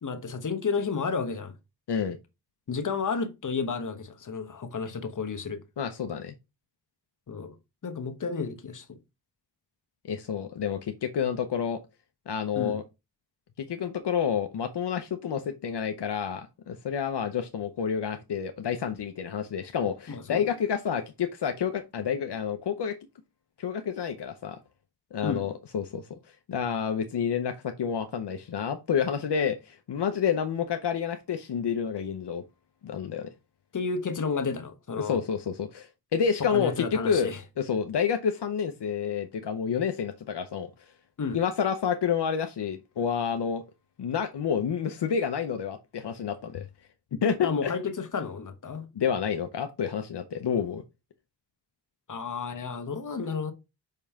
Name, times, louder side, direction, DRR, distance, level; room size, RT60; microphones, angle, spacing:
voice 1, 0.0-1.5 2.7-5.6 7.3-7.6 7.8-9.0 12.5-12.8 20.1-20.5 25.2-25.4 33.7-35.2 36.4-37.4 41.2-41.4 47.4-48.8 52.1-53.5, left 5 dB, 50° left, 1.1 m, -31 dB
voice 2, 5.8-6.3 10.1-11.8 12.3-12.8 13.6-23.0 23.6-24.6 25.1-26.2 26.5-32.4 32.8-33.3 35.0-40.7 41.3-43.6 44.0-46.6 47.2-47.7 48.9-50.8, left 7 dB, 75° left, 0.8 m, -29 dB
5.6 x 5.3 x 3.6 m
wide cardioid pair, 155°, 41 cm